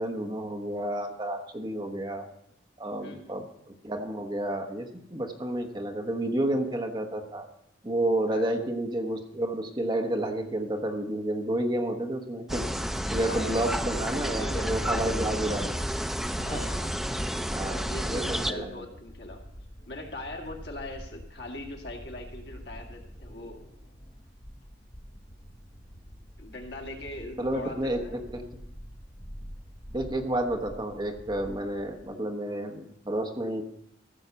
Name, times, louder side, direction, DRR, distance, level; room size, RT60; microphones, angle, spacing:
voice 1, 0.0-2.3 2.8-3.4 3.8-7.4 7.8-12.6 13.1-15.8 16.5-16.6 17.5-18.8 27.4-28.4 29.9-33.6, right 1 dB, 25° right, 4 dB, 1.0 m, -30 dB
voice 2, 3.0-3.4 8.3-8.4 13.2-15.6 16.4-17.1 17.9-19.4 19.9-23.6 26.4-28.2, left 1 dB, 65° left, 1 dB, 2.0 m, -41 dB
sound 1, 12.5-18.5, equal, ahead, 0.5 m, -30 dB
sound 2, 17.2-32.1, equal, 40° left, 2.9 m, -47 dB
15.0 x 5.6 x 6.9 m, 0.77 s
head